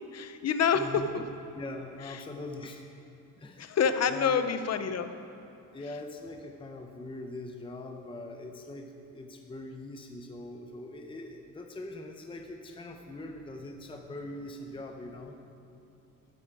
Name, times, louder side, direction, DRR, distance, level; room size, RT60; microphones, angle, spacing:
voice 1, 0.1-1.2 3.6-5.1, left 6 dB, 50° left, 10 dB, 0.8 m, -27 dB
voice 2, 0.7-1.3 1.6-2.8 3.4-3.8 4.1-4.6 5.7-15.4, left 2 dB, 15° left, 3 dB, 0.7 m, -42 dB
13.5 x 11.5 x 4.8 m, 2.9 s
wide cardioid pair, 150°, 32 cm